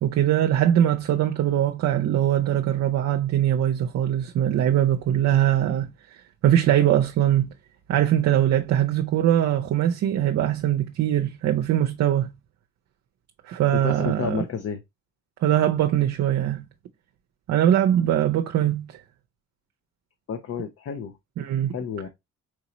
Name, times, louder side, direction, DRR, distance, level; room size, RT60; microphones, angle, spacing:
voice 1, 0.0-7.5 7.9-12.3 13.5-14.4 15.4-16.6 17.5-19.0 21.4-21.8, right 11 dB, 65° right, 0.6 m, -22 dB
voice 2, 13.7-14.8 20.3-21.1 21.7-22.1, left 7 dB, 50° left, 0.7 m, -30 dB
4.6 x 2.8 x 2.9 m
cardioid pair, 90°, 30 cm